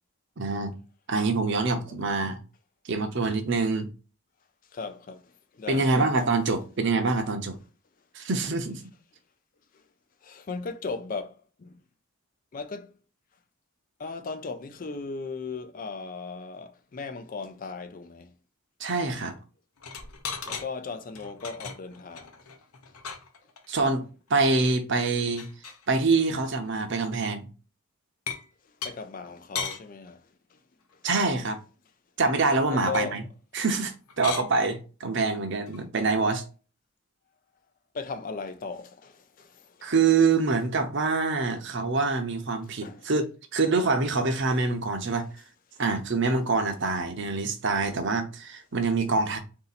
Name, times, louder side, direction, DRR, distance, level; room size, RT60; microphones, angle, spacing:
voice 1, 0.4-0.8 1.1-2.4 2.8-3.9 5.7-7.6 8.1-8.8 18.8-19.3 23.7-25.5 25.9-27.5 31.0-31.6 32.2-33.2 33.5-36.4 39.8-43.2 43.5-45.3 45.8-49.4, right 3 dB, 55° right, 0.7 m, -25 dB
voice 2, 4.7-6.0 9.7-9.9 10.2-11.8 12.5-13.0 14.0-18.3 20.5-22.4 22.9-23.0 23.7-23.8 28.6-30.6 30.9-31.0 32.7-33.2 37.9-39.9 42.8-43.1 45.7-45.8, left 4 dB, 40° left, 0.4 m, -37 dB
sound 1, 19.8-20.7 21.1-23.8 24.3-24.4 24.6-24.7 25.0-25.9 26.5-26.7 28.3-28.5 28.8-28.9 29.5-29.8 32.9-33.1 33.6-33.8 34.1-34.5 35.7-35.8, left 6 dB, 90° left, 0.8 m, -37 dB
3.9 x 2.8 x 4.0 m
head